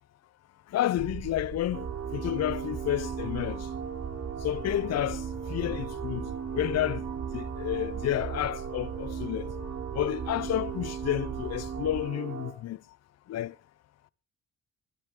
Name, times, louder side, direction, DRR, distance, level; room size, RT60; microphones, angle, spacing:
voice 1, 0.7-1.9 2.1-3.7 4.4-9.5 9.9-12.8 13.3-13.5, left 12 dB, 60° left, 0.7 m, -30 dB
sound 1, 1.0-12.0, right 6 dB, 35° right, 1.0 m, -39 dB
sound 2, 1.7-12.5, right 7 dB, 55° right, 3.6 m, -38 dB
22.0 x 12.0 x 3.8 m
cardioid pair, 90°, 30 cm